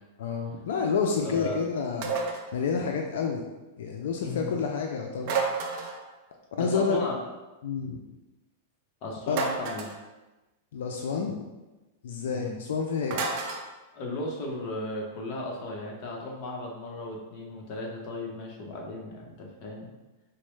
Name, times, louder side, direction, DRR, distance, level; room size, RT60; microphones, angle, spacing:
voice 1, 0.2-2.1 2.5-3.4 3.8-5.3 6.5-7.0 7.6-8.0 9.3-9.4 10.7-11.5 12.0-13.3, left 5 dB, 75° left, 2 dB, 0.3 m, -29 dB
voice 2, 1.2-1.6 4.2-4.6 6.6-7.1 9.0-9.9 12.3-12.5 13.9-19.9, left 1 dB, 40° left, -1 dB, 0.7 m, -35 dB
sound 1, 2.0-2.5 5.2-6.1 9.3-10.0 13.1-13.7, right 4 dB, 45° right, 0.4 m, -30 dB
4.2 x 2.0 x 3.1 m, 1.1 s
supercardioid pair, 160°, 0 cm